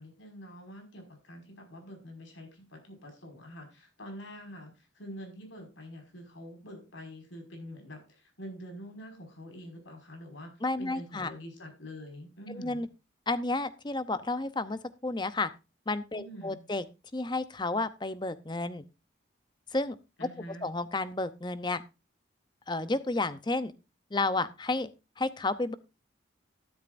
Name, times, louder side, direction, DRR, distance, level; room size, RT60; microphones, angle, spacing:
voice 1, 0.0-10.5 10.8-12.8 16.1-16.7 20.2-20.7, equal, 80° left, 3 dB, 5.5 m, -46 dB
voice 2, 10.6-11.3 12.6-12.9 13.3-15.5 15.9-16.8 17.1-18.8 19.7-20.0 20.6-21.8 22.7-23.7 24.1-24.9 25.2-25.7, left 2 dB, 25° left, 14 dB, 0.7 m, -31 dB
13.0 x 12.0 x 2.6 m, 0.28 s
head